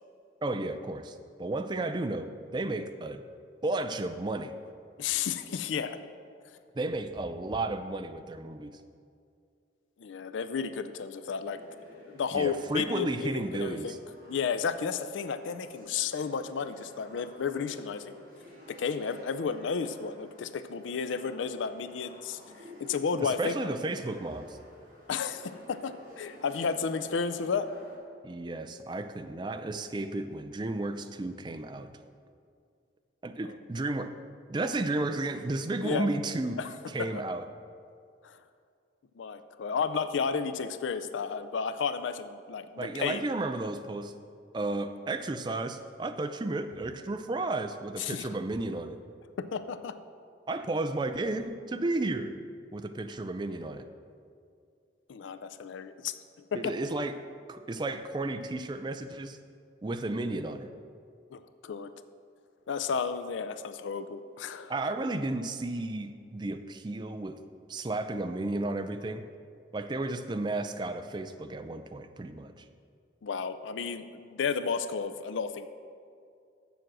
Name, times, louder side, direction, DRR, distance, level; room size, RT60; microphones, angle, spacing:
voice 1, 0.4-3.2 3.6-4.5 6.7-8.8 12.3-14.0 23.2-24.6 28.2-31.9 33.2-34.1 34.5-36.6 36.9-37.4 42.8-44.1 44.5-49.0 50.5-52.3 52.7-53.9 56.5-57.1 57.5-59.4 59.8-60.7 64.7-67.4 67.7-69.2 69.7-72.6, right 2 dB, 25° right, 9 dB, 0.4 m, -33 dB
voice 2, 5.0-6.0 10.0-11.6 11.9-14.0 14.3-18.2 18.7-22.4 22.8-23.7 25.1-27.7 33.4-33.5 35.8-36.1 36.6-36.7 37.0-37.1 38.2-38.4 39.2-43.2 48.0-48.3 49.4-49.9 55.1-56.1 56.5-56.7 61.3-61.9 62.7-64.7 73.2-75.7, left 6 dB, 85° left, 11 dB, 0.4 m, -32 dB
sound 1, 11.5-28.0, left 1 dB, 45° right, 2.5 m, -53 dB
7.6 x 7.0 x 6.1 m, 2.3 s
head